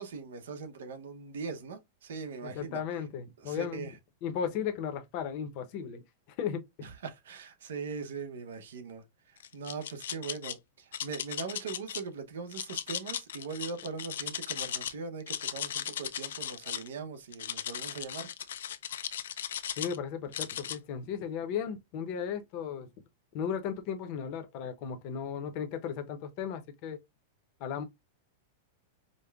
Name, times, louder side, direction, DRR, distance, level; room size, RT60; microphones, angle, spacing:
voice 1, 0.0-2.8 3.4-3.9 6.8-18.3, right 5 dB, 90° right, 0.8 m, -41 dB
voice 2, 2.4-3.9 4.2-6.0 6.4-6.9 19.8-22.9 23.3-27.0 27.6-27.8, left 7 dB, 40° left, 0.7 m, -35 dB
sound 1, 9.4-10.5 10.9-12.0 12.5-14.9 15.2-16.9 17.3-20.0 20.3-20.8, left 10 dB, 85° left, 0.4 m, -37 dB
5.1 x 2.1 x 2.3 m
supercardioid pair, 160°, 0 cm